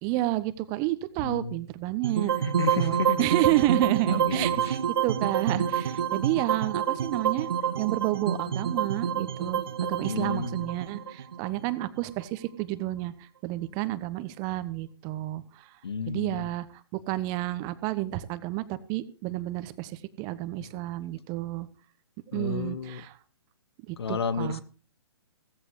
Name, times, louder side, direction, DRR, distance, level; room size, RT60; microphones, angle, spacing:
voice 1, 0.0-2.3 2.8-7.5 7.8-15.7 16.1-21.7 22.3-23.1 23.9-24.6, right 16 dB, 25° right, 1.1 m, -30 dB
voice 2, 1.2-1.6 2.4-3.3 4.1-4.7 10.1-10.7 15.8-16.5 20.7-20.8 22.3-23.0 24.0-24.6, left 5 dB, 65° left, 1.4 m, -32 dB
sound 1, 2.0-12.2, right 8 dB, 55° right, 1.1 m, -28 dB
16.5 x 15.0 x 3.1 m
figure-of-eight pair, 130°, 15 cm